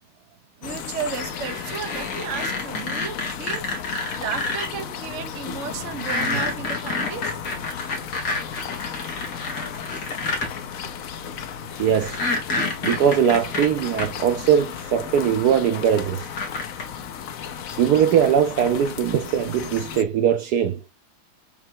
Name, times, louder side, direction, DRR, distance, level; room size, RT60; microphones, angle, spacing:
sound 1, 0.6-20.0, left 8 dB, 70° left, 0.8 m, -35 dB
voice 1, 0.6-3.7 4.1-7.3, right 7 dB, 50° right, 0.9 m, -33 dB
sound 2, 1.1-4.7 5.9-10.5 12.0-14.1 15.2-15.3 16.2-16.8, left 2 dB, 55° left, 2.5 m, -28 dB
voice 2, 11.8-12.2 12.8-16.2 17.8-20.8, right 8 dB, 90° right, 0.8 m, -20 dB
8.8 x 3.3 x 4.6 m
omnidirectional pair, 2.4 m